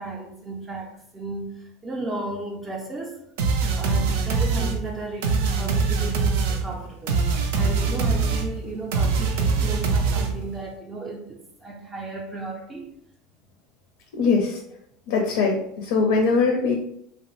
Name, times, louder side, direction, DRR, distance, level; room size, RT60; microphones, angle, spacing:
voice 1, 0.0-3.2 3.8-7.2 7.5-12.9, right 2 dB, 20° right, 0 dB, 0.4 m, -34 dB
sound 1, 3.4-10.6, right 4 dB, 85° right, 0.4 m, -23 dB
voice 2, 14.1-14.6 15.1-16.7, left 4 dB, 80° left, 2 dB, 0.5 m, -21 dB
2.7 x 2.0 x 2.9 m, 0.73 s
supercardioid pair, 135°, 0 cm